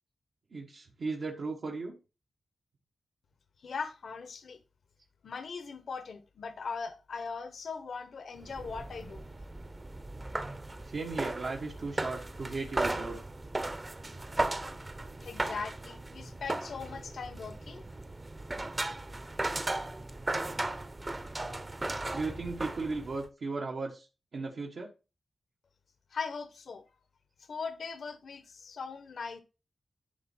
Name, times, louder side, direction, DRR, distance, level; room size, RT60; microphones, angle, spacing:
voice 1, 0.5-2.0 10.4-10.6 10.8-13.2 22.1-24.1 24.3-24.9, right 3 dB, 70° right, 1.4 m, -36 dB
voice 2, 3.6-4.6 5.2-9.2 15.2-17.8 26.1-26.9 27.4-29.4, left 5 dB, 75° left, 1.0 m, -40 dB
sound 1, 8.4-23.3, right 2 dB, 25° right, 0.8 m, -36 dB
11.0 x 4.2 x 4.3 m
wide cardioid pair, 85°, 0 cm